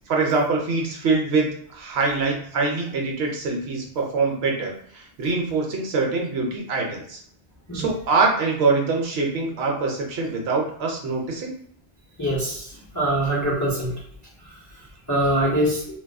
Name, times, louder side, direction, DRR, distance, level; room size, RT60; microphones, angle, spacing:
voice 1, 0.1-7.2 7.7-11.6, right 3 dB, 70° right, 1 dB, 0.8 m, -24 dB
voice 2, 12.2-14.0 14.4-16.0, right 1 dB, 25° left, -4 dB, 0.4 m, -24 dB
2.5 x 2.2 x 2.2 m, 0.64 s
omnidirectional pair, 1.2 m